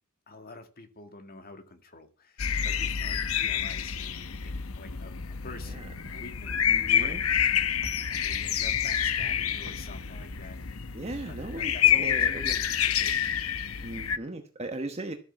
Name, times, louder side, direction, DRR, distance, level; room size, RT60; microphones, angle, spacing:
voice 1, 0.3-5.2 5.4-10.6 11.3-13.3, left 3 dB, 45° left, 7 dB, 2.1 m, -48 dB
sound 1, 2.4-14.2, left 9 dB, 75° left, 0.9 m, -28 dB
sound 2, 5.9-9.9 10.2-10.5, equal, 80° right, 2.0 m, -46 dB
voice 2, 6.7-7.2 10.9-12.5 13.8-15.1, right 2 dB, 30° right, 5 dB, 1.2 m, -37 dB
13.5 x 8.4 x 6.0 m, 0.36 s
head